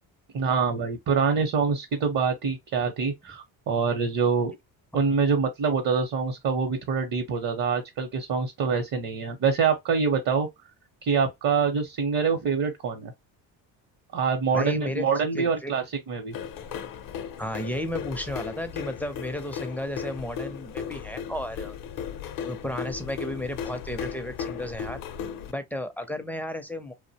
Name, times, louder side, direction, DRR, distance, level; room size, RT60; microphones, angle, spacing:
voice 1, 0.3-4.5 4.9-10.5 11.0-13.1 14.1-16.3, right 5 dB, 50° right, 0.8 m, -25 dB
voice 2, 14.5-15.1 15.3-15.7 17.4-21.8 22.4-25.0 25.5-26.9, left 1 dB, 5° left, 0.4 m, -33 dB
sound 1, 16.3-25.5, left 8 dB, 50° left, 0.6 m, -36 dB
2.5 x 2.1 x 2.7 m
supercardioid pair, 85°, 43 cm